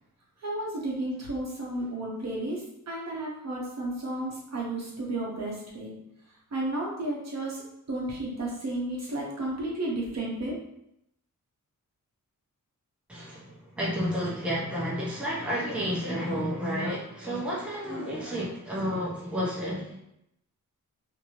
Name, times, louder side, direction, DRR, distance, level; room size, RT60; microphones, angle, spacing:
voice 1, 0.4-5.9 6.5-7.6 7.9-10.6, right 1 dB, 50° right, -3 dB, 0.8 m, -32 dB
voice 2, 13.1-20.0, equal, 5° right, -6 dB, 0.7 m, -31 dB
2.6 x 2.6 x 2.9 m, 0.79 s
wide cardioid pair, 150°, 33 cm